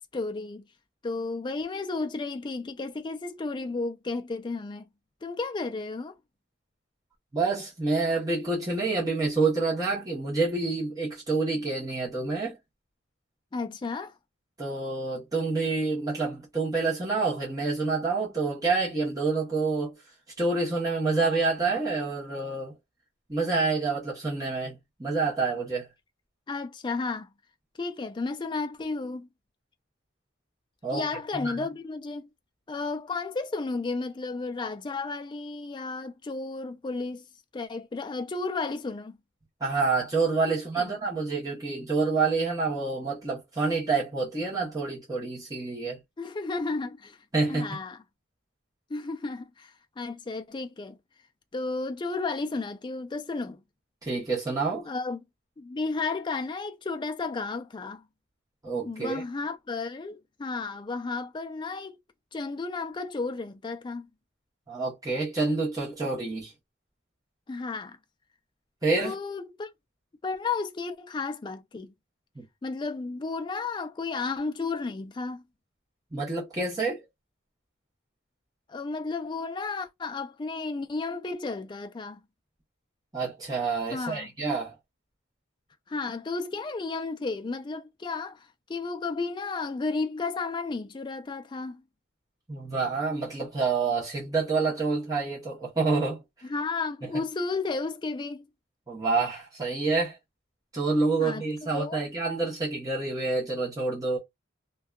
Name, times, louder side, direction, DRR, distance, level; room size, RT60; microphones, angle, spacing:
voice 1, 0.1-0.6 1.0-4.9 5.2-6.2 13.5-14.2 26.5-27.3 27.8-29.3 30.9-32.3 32.7-37.3 37.5-39.2 40.5-41.0 46.2-47.2 47.5-48.0 48.9-51.0 51.5-53.6 54.9-55.2 55.6-58.0 58.9-62.0 62.3-64.1 67.5-68.0 69.0-69.7 70.2-71.9 72.6-75.4 78.7-82.2 83.9-84.3 85.9-91.8 96.4-98.5 101.2-101.4 101.7-102.0, left 3 dB, 25° left, 0.3 m, -33 dB
voice 2, 7.3-12.6 14.6-19.9 20.4-22.7 23.3-25.9 30.8-31.1 31.3-31.7 39.6-46.0 47.3-47.8 54.0-54.9 58.6-59.2 64.7-66.5 68.8-69.1 72.3-72.5 76.1-77.0 83.1-84.7 92.5-96.2 97.0-97.1 98.9-100.2 100.7-104.2, right 3 dB, 20° right, 0.9 m, -28 dB
2.7 x 2.2 x 2.3 m
head